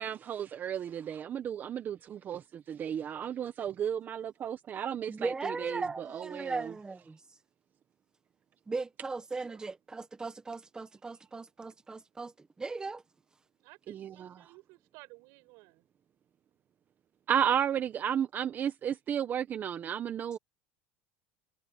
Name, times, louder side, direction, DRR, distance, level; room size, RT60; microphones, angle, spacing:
voice 1, 0.0-5.8 6.1-6.7 13.9-14.5 17.3-20.4, right 9 dB, 30° right, 1.0 m, -33 dB
voice 2, 5.1-7.2 8.7-13.0, right 3 dB, 10° right, 1.3 m, -38 dB
voice 3, 13.6-15.8, right 26 dB, 65° right, 5.0 m, -55 dB
supercardioid pair, 135°, 6 cm